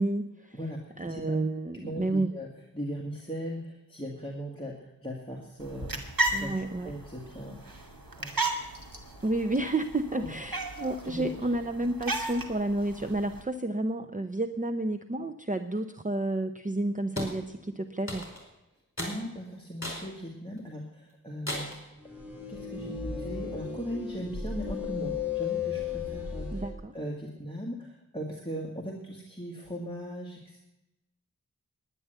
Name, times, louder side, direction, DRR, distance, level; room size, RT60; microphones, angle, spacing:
voice 1, 0.0-0.6 1.0-2.3 6.3-6.9 9.2-18.3 26.5-26.9, right 2 dB, 25° right, 7 dB, 0.6 m, -30 dB
voice 2, 0.5-1.4 1.8-2.5 2.7-6.0 6.3-6.5 6.8-7.6 8.2-8.5 10.2-10.3 11.1-11.2 19.0-21.7 22.5-26.6 26.9-30.6, equal, 15° left, -2 dB, 2.1 m, -38 dB
sound 1, 5.6-13.4, right 2 dB, 85° right, 1.9 m, -35 dB
sound 2, 17.2-17.4 18.1-18.5 19.0-19.2 19.8-20.1 20.6-20.7 21.5-21.8, left 1 dB, 40° left, 4.7 m, -35 dB
sound 3, 22.0-26.7, left 6 dB, 5° right, 4.3 m, -35 dB
10.5 x 10.0 x 7.9 m, 0.92 s
wide cardioid pair, 40°, 34 cm